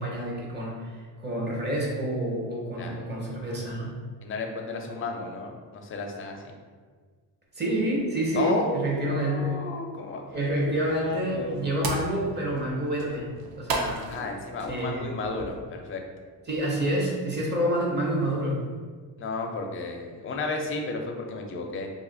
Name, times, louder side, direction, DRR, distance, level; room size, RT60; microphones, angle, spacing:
voice 1, 0.0-4.0 7.5-9.6 10.3-14.1 14.7-15.1 16.5-18.6, right 1 dB, 25° right, -3 dB, 0.7 m, -28 dB
voice 2, 2.7-3.1 4.2-6.5 8.3-11.6 14.1-16.0 19.2-21.9, left 3 dB, 35° left, 2 dB, 0.4 m, -33 dB
sound 1, 10.2-15.6, right 3 dB, 60° right, 0.6 m, -37 dB
2.7 x 2.4 x 3.7 m, 1.5 s
cardioid pair, 140°, 41 cm